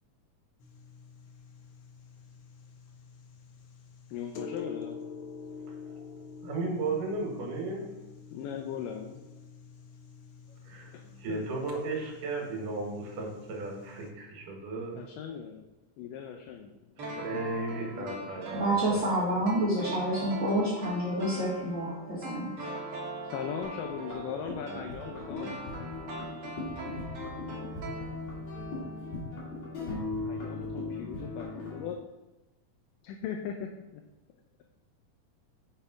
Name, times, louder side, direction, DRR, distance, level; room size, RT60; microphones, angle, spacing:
sound 1, 0.6-14.1, left 5 dB, 70° left, 1.9 m, -47 dB
voice 1, 4.1-5.0 8.3-9.2 10.9-11.0 11.3-11.4 15.0-15.7 16.0-18.5 23.2-25.6 30.2-32.0 33.0-34.0, left 8 dB, 85° left, 4 dB, 2.3 m, -39 dB
voice 2, 6.4-7.8 10.6-15.1 17.0-19.2, right 3 dB, 75° right, 0 dB, 3.0 m, -35 dB
sound 2, 17.0-28.6 28.9-29.0, right 2 dB, 45° right, 1.4 m, -41 dB
voice 3, 18.5-22.5, right 1 dB, 30° right, -9 dB, 1.8 m, -28 dB
sound 3, 23.6-31.9, left 3 dB, 55° left, 3.1 m, -39 dB
6.7 x 5.7 x 4.9 m, 1.1 s
omnidirectional pair, 3.8 m